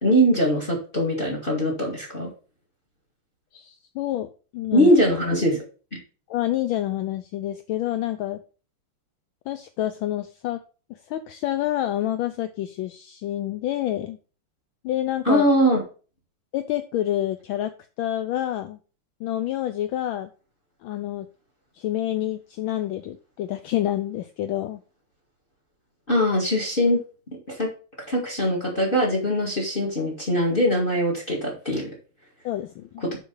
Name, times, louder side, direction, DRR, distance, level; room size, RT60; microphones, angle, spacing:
voice 1, 0.0-2.3 4.7-5.6 15.3-15.8 26.1-27.0 27.5-27.7 28.1-31.9 33.0-33.2, equal, 25° left, 1 dB, 2.1 m, -21 dB
voice 2, 3.5-5.0 6.3-8.4 9.5-10.6 10.9-14.2 14.8-15.4 16.5-17.7 18.0-18.8 19.2-20.3 20.8-21.3 21.7-24.8 32.4-33.0, left 13 dB, 75° left, 10 dB, 1.3 m, -28 dB
7.3 x 4.8 x 5.4 m, 0.36 s
omnidirectional pair, 2.4 m